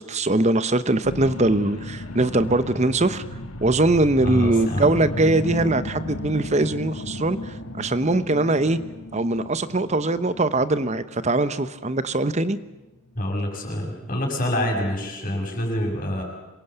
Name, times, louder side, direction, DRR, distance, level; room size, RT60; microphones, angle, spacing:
voice 1, 0.0-3.2 3.6-8.8 9.1-12.6, right 2 dB, 30° right, 13 dB, 0.9 m, -22 dB
sound 1, 1.0-13.7 14.2-14.3, left 1 dB, 80° left, 2.1 m, -35 dB
voice 2, 4.2-4.9 13.1-16.2, left 1 dB, 40° left, 0 dB, 6.5 m, -26 dB
26.5 x 23.0 x 8.0 m, 1.1 s
head